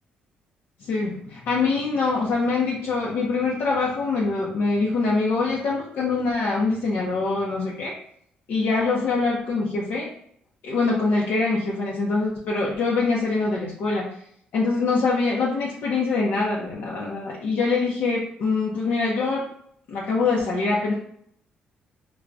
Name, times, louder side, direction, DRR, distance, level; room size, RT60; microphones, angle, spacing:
voice 1, 0.8-7.9 8.5-10.1 10.6-14.1 14.5-19.5 19.9-20.9, left 3 dB, 70° left, -4 dB, 0.6 m, -24 dB
4.5 x 2.1 x 2.5 m, 0.68 s
cardioid pair, 120°, 3 cm